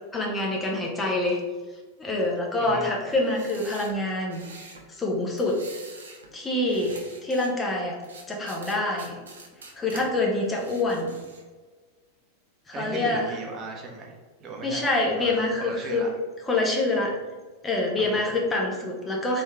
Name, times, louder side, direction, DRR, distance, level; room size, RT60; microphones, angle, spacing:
voice 1, 0.1-1.4 2.0-5.6 6.3-8.0 8.3-9.2 9.7-11.1 12.7-13.4 14.6-16.1 16.5-17.1 17.6-19.4, left 2 dB, 15° left, -1 dB, 0.8 m, -26 dB
voice 2, 2.6-2.9 12.7-14.9 15.2-15.3 15.6-16.1 17.9-18.2, right 3 dB, 30° right, 1 dB, 0.8 m, -37 dB
sound 1, 3.1-4.8 5.4-6.3 6.6-7.5 8.0-10.0 10.4-11.5, right 3 dB, 65° right, 0.7 m, -46 dB
3.6 x 3.1 x 3.4 m, 1.4 s
figure-of-eight pair, 90°, 0 cm